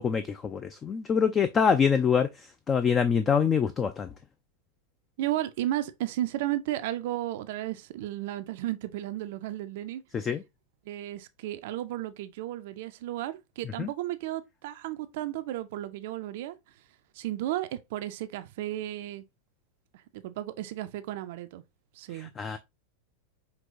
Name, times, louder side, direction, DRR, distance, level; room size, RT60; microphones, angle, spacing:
voice 1, 0.0-2.3 2.7-4.1 10.1-10.4 13.8-13.9 22.4-22.6, left 6 dB, 20° left, 0.3 m, -25 dB
voice 2, 5.2-10.0 10.9-16.6 17.2-19.2 20.1-21.6 22.0-22.3, right 14 dB, 50° right, 0.4 m, -34 dB
5.2 x 2.9 x 2.5 m
figure-of-eight pair, 90°, 0 cm